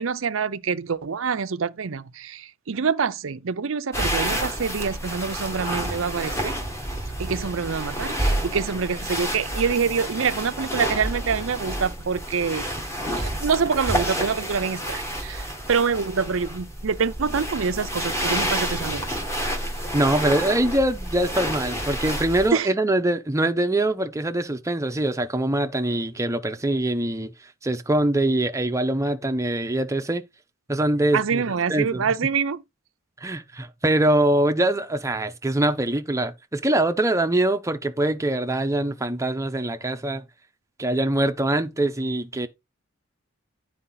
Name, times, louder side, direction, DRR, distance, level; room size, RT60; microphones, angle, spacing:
voice 1, 0.0-6.6 7.2-12.7 13.1-19.2 22.5-22.7 31.1-32.6, right 6 dB, 70° right, 0.6 m, -26 dB
sound 1, 3.9-22.5, right 1 dB, 15° left, 2.1 m, -29 dB
voice 2, 19.9-27.3 27.6-30.2 30.7-31.4 31.7-32.0 33.2-40.2 40.8-42.5, right 1 dB, 15° right, 0.8 m, -23 dB
10.0 x 5.0 x 3.9 m
head